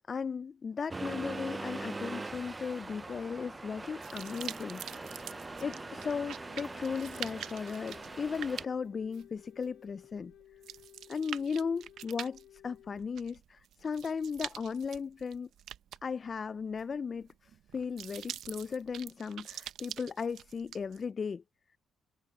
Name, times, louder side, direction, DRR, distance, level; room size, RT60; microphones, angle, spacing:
voice 1, 0.1-5.3 5.6-10.3 11.1-15.5 16.0-21.4, left 5 dB, 40° left, 0.4 m, -36 dB
Accelerating revving vroom, 0.9-8.7, right 3 dB, 20° right, 0.4 m, -42 dB
sound 1, 4.0-21.0, right 11 dB, 75° right, 0.7 m, -45 dB
Wind instrument woodwind instrument, 4.4-13.1, left 13 dB, 80° left, 5.5 m, -58 dB
cardioid pair, 75°, 0 cm